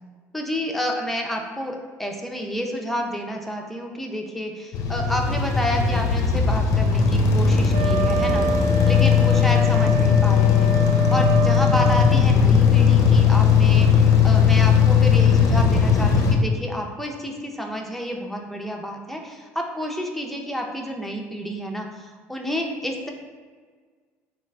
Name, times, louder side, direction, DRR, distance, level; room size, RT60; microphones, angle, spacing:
voice 1, 0.3-23.1, equal, 5° left, 1 dB, 0.5 m, -30 dB
sound 1, 4.7-16.4, left 6 dB, 60° left, 0.5 m, -18 dB
Wind instrument woodwind instrument, 7.7-12.2, right 2 dB, 85° right, 0.3 m, -26 dB
3.0 x 2.4 x 3.4 m, 1.5 s
supercardioid pair, 90°, 6 cm